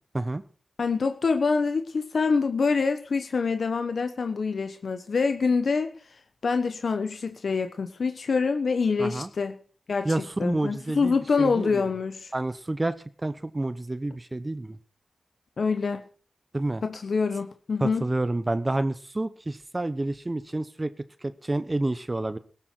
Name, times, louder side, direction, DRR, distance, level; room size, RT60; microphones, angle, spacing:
voice 1, 0.8-5.9 6.4-9.6 9.9-10.1 10.4-12.3 15.6-16.0 16.8-18.0, left 4 dB, 75° left, 8 dB, 1.2 m, -25 dB
voice 2, 9.0-9.3 10.0-11.9 12.3-13.0 13.2-14.8 16.5-16.8 17.8-20.9 21.2-22.4, right 2 dB, 35° right, 13 dB, 1.0 m, -29 dB
16.5 x 12.5 x 4.6 m, 0.41 s
cardioid pair, 40°, 0 cm